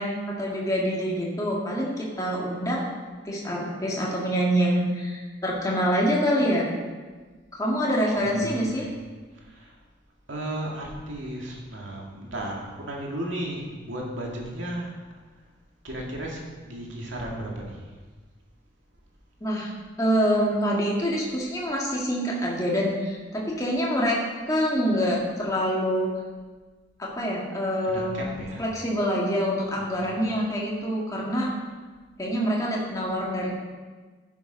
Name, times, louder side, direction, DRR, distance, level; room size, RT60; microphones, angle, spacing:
voice 1, 0.0-2.9 3.2-6.7 7.5-8.9 19.4-19.7 20.0-24.2 24.5-26.1 27.0-28.3 28.6-31.5 32.2-33.5, equal, 15° left, -3 dB, 1.8 m, -26 dB
voice 2, 8.2-8.9 9.3-9.8 10.3-14.9 15.8-17.8 27.9-28.7 29.7-30.3, right 1 dB, 75° right, -1 dB, 2.3 m, -35 dB
11.0 x 7.3 x 5.3 m, 1.4 s
head